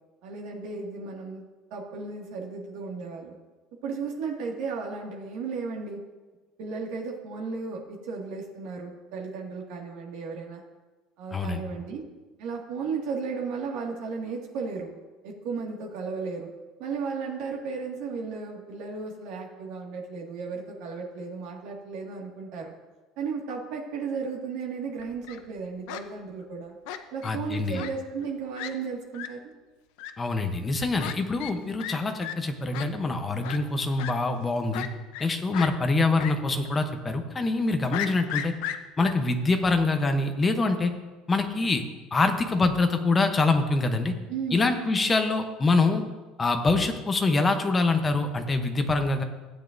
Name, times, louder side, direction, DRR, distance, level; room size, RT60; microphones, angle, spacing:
voice 1, 0.2-1.4 1.7-3.3 3.8-6.0 6.6-10.6 11.2-12.0 12.4-14.9 15.2-16.5 16.8-22.7 23.2-26.8 27.1-29.5 44.3-44.7, right 5 dB, 65° right, -1 dB, 1.9 m, -34 dB
voice 2, 11.3-11.6 27.2-27.8 30.2-34.9 35.2-38.5 39.0-40.9 41.3-41.8 42.1-44.1 44.5-46.0 46.4-49.2, left 3 dB, 15° left, 6 dB, 0.8 m, -25 dB
Fowl, 25.0-25.4 25.9-26.0 26.9-27.3 27.7-27.9 28.2-28.3 28.6-28.7 29.1-29.3 30.0-30.1 31.0-31.1 31.4-31.5 31.8-32.0 32.2-32.3 32.7-32.9 33.4-33.6 34.0-34.1 34.7-35.3 35.5-35.7 36.2-36.3 36.7-36.8 37.9-39.1, left 11 dB, 75° left, 0.7 m, -34 dB
15.5 x 9.2 x 2.6 m, 1.2 s
cardioid pair, 170°, 0 cm